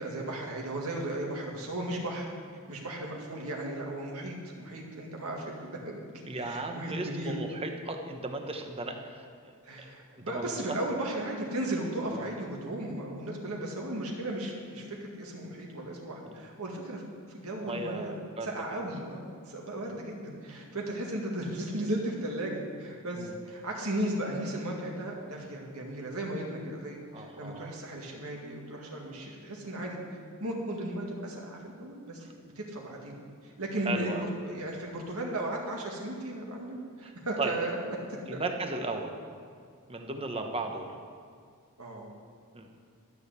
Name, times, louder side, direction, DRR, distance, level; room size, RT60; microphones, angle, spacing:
voice 1, 0.0-2.3 2.7-6.0 6.4-7.3 9.6-17.0 17.3-30.0 30.4-32.2 32.6-33.2 33.4-38.4 38.8-38.9 41.8-42.1, right 1 dB, 75° right, -1 dB, 2.0 m, -36 dB
voice 2, 6.3-9.5 10.1-10.5 12.1-12.3 16.3-16.4 17.6-18.5 19.9-20.0 23.2-23.4 27.1-27.8 32.2-32.3 33.8-34.3 37.0-37.1 37.4-37.5 38.3-39.2 39.9-40.9 42.5-42.7, right 2 dB, 25° right, 4 dB, 1.0 m, -36 dB
13.0 x 6.5 x 8.1 m, 2.1 s
head